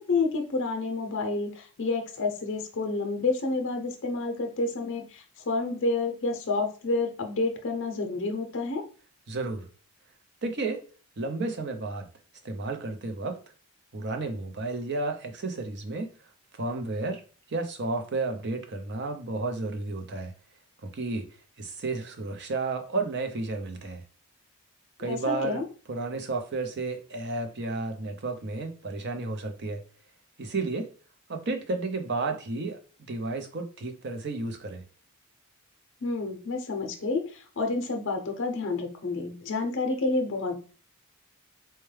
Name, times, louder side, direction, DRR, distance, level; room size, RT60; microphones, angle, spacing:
voice 1, 0.1-8.8 25.0-25.7 36.0-40.5, left 3 dB, 55° left, 3 dB, 0.6 m, -29 dB
voice 2, 9.3-9.7 10.4-10.9 11.2-12.1 12.4-13.4 13.9-16.1 16.5-17.2 17.5-20.3 20.8-21.3 21.6-24.0 25.0-25.6 25.9-29.8 30.4-30.9 31.3-32.8 33.1-34.9, right 3 dB, 50° right, 6 dB, 0.6 m, -32 dB
4.4 x 2.2 x 3.3 m, 0.39 s
head